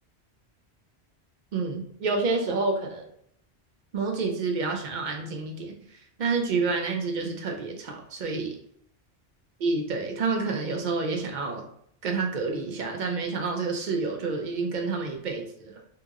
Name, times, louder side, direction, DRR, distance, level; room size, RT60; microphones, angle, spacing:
voice 1, 1.5-3.1 3.9-5.7 6.2-8.6 9.6-11.7 12.0-15.7, right 4 dB, 60° right, 2 dB, 0.5 m, -28 dB
2.8 x 2.7 x 2.4 m, 0.68 s
omnidirectional pair, 1.1 m